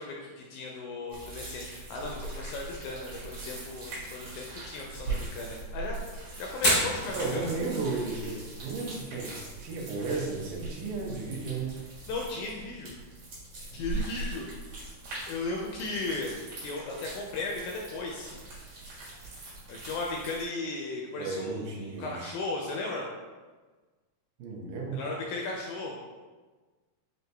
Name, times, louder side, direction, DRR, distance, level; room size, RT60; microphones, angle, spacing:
voice 1, 0.0-7.4 12.1-12.9 13.7-14.5 15.3-16.3 16.6-18.3 19.7-23.1 24.9-26.0, left 3 dB, 80° left, -1 dB, 1.7 m, -36 dB
sound 1, 1.1-20.5, right 2 dB, 60° right, 2.6 m, -41 dB
Fire, 6.5-20.4, left 1 dB, 60° left, 0.9 m, -38 dB
voice 2, 7.1-9.3 9.6-11.7 21.2-22.3 24.4-25.0, right 3 dB, 80° right, -1 dB, 2.2 m, -34 dB
6.3 x 2.6 x 2.2 m, 1.3 s
omnidirectional pair, 3.8 m